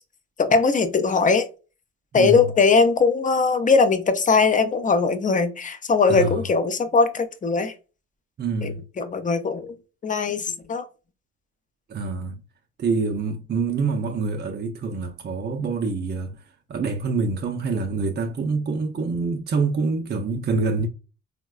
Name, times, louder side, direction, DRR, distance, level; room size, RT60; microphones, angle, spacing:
voice 1, 0.4-1.4 2.1-7.7 8.6-9.7 10.0-10.8, left 4 dB, 25° left, 0.5 m, -20 dB
voice 2, 2.1-2.5 6.1-6.4 8.4-8.8 11.9-12.4 12.8-16.4 16.7-20.9, right 4 dB, 35° right, 0.5 m, -26 dB
3.8 x 2.1 x 2.3 m
cardioid pair, 90°, 30 cm